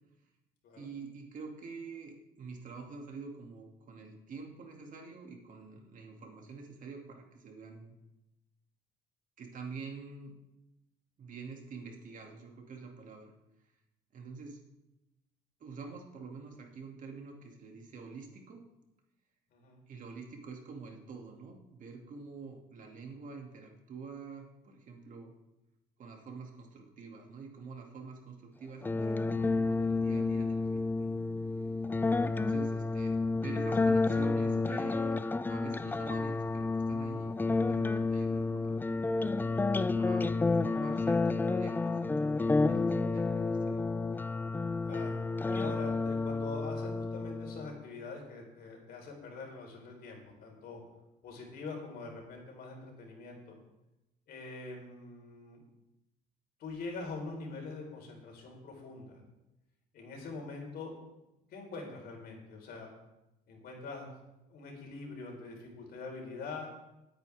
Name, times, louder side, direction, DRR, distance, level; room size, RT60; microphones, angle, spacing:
voice 1, 0.7-7.9 9.4-10.3 11.2-13.3 14.1-14.6 15.6-18.6 19.9-25.3 26.0-31.1 31.6-31.7 32.2-35.2 35.5-38.8 40.0-40.3 40.5-43.8, right 4 dB, 50° right, 1 dB, 2.4 m, -47 dB
sound 1, 28.8-47.8, left 3 dB, 10° left, 0.4 m, -30 dB
voice 2, 44.8-45.2 45.5-50.8 51.2-53.6 54.3-55.6 56.6-59.2 59.9-60.9 61.5-62.9 63.5-64.1 64.5-66.7, left 3 dB, 65° left, 1 dB, 4.0 m, -44 dB
19.5 x 9.1 x 3.5 m, 0.94 s
cardioid pair, 110°, 17 cm